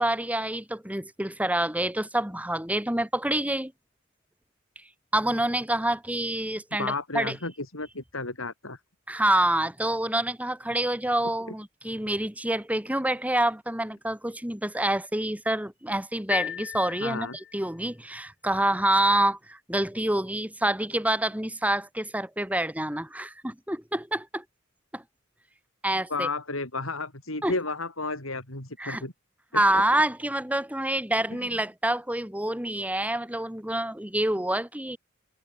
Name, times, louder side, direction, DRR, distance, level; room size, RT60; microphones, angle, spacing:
voice 1, 0.0-3.7 5.1-7.4 9.1-24.4 24.9-25.0 25.8-26.3 27.4-27.5 28.8-29.0 29.5-35.0, right 1 dB, 5° right, 5.6 m, -27 dB
voice 2, 6.8-8.8 17.0-17.4 26.1-29.1 29.7-29.8 31.3-31.5, left 3 dB, 85° left, 7.2 m, -32 dB
sound 1, 16.3-17.8, left 9 dB, 55° left, 4.5 m, -34 dB
head